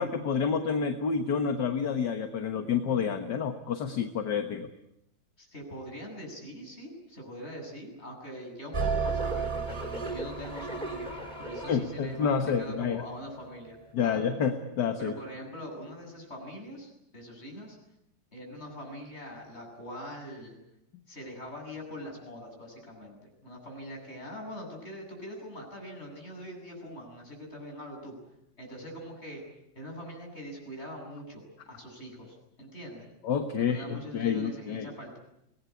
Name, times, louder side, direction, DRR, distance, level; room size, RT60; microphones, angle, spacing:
voice 1, 0.0-4.7 11.7-13.0 13.9-15.1 33.2-34.9, left 6 dB, 65° left, 7 dB, 2.0 m, -29 dB
voice 2, 5.4-11.1 11.4-14.3 15.0-17.8 18.3-20.6 21.1-23.2 23.4-28.2 28.6-29.4 29.7-33.1 33.6-35.2, equal, 35° left, 0 dB, 8.3 m, -43 dB
sound 1, 8.7-13.0, right 4 dB, 25° right, 3.2 m, -33 dB
25.0 x 19.5 x 9.8 m, 0.82 s
omnidirectional pair, 2.0 m